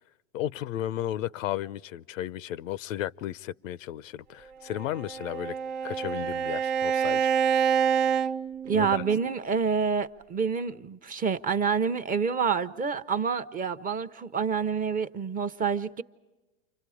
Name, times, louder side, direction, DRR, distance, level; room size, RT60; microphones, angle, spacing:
voice 1, 0.3-5.5 5.8-7.3 8.7-9.0, left 12 dB, 80° left, 0.7 m, -34 dB
Bowed string instrument, 4.7-9.2, right 7 dB, 70° right, 1.1 m, -27 dB
voice 2, 8.6-16.0, right 6 dB, 20° right, 0.7 m, -27 dB
30.0 x 26.0 x 5.0 m
hypercardioid pair, 115°, 39 cm